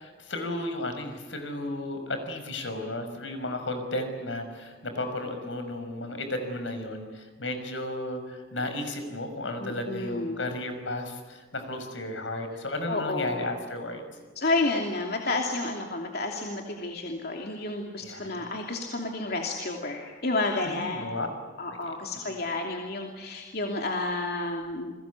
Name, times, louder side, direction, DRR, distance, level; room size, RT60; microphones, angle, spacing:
voice 1, 0.0-14.1 18.0-18.5 20.6-21.3 22.3-22.4, left 1 dB, 80° left, 7 dB, 5.7 m, -34 dB
voice 2, 9.6-10.4 12.9-13.5 14.4-21.0 21.6-24.9, left 2 dB, 55° left, 1 dB, 2.9 m, -30 dB
29.5 x 22.0 x 8.4 m, 1.3 s
head